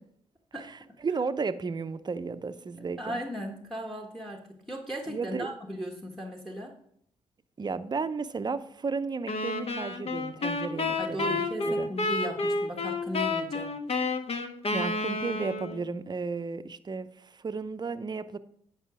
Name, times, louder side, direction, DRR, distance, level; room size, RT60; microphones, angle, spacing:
voice 1, 0.6-3.2 5.1-5.5 7.6-11.9 14.7-18.4, right 4 dB, 30° right, 11 dB, 0.7 m, -34 dB
voice 2, 3.0-6.7 11.0-13.7, equal, ahead, 1 dB, 1.3 m, -37 dB
sound 1, 9.3-15.9, left 3 dB, 50° left, 1.2 m, -30 dB
10.0 x 4.9 x 4.8 m, 0.67 s
hypercardioid pair, 50°, 13 cm